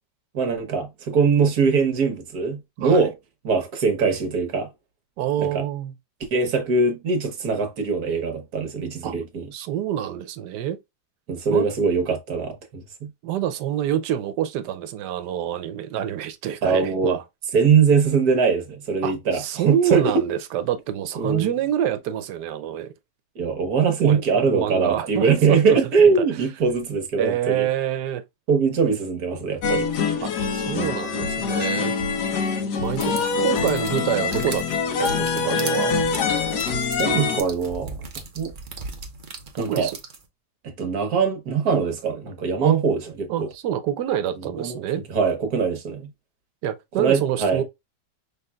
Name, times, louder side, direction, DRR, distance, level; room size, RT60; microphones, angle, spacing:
voice 1, 0.3-3.1 3.4-4.7 5.4-5.7 6.3-9.5 11.3-13.1 16.6-17.2 17.5-20.1 21.2-21.5 23.3-27.7 28.5-29.9 30.7-30.9 37.0-38.0 38.3-38.5 39.6-39.9 40.8-43.5 44.4-44.8 45.1-46.1 47.0-47.6, right 5 dB, 65° right, 1.5 m, -22 dB
voice 2, 2.8-3.1 5.2-5.9 9.0-9.2 9.5-10.8 11.5-11.7 13.2-17.2 19.0-22.9 24.0-25.8 26.0-26.1 27.2-28.2 30.2-32.0 32.8-34.7 35.0-35.9 39.5-40.0 42.6-42.8 43.3-45.0 46.6-47.6, right 10 dB, 85° right, 1.3 m, -27 dB
sound 1, 29.6-37.4, left 5 dB, 75° left, 1.5 m, -24 dB
sound 2, 32.8-40.2, right 4 dB, 40° right, 0.8 m, -38 dB
5.6 x 3.4 x 2.3 m
omnidirectional pair, 1.8 m